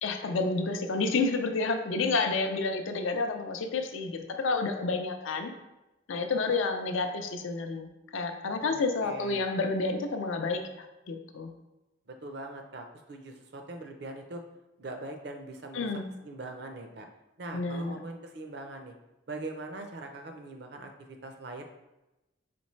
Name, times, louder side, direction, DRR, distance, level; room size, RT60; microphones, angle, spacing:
voice 1, 0.0-5.5 6.1-11.5 15.7-16.1 17.5-18.0, left 3 dB, 80° left, 6 dB, 0.5 m, -30 dB
voice 2, 8.6-9.5 12.1-14.4 14.8-15.9 16.2-17.1 17.4-18.9 19.3-21.6, right 2 dB, 55° right, 4 dB, 0.5 m, -42 dB
4.2 x 3.9 x 3.1 m, 0.98 s
head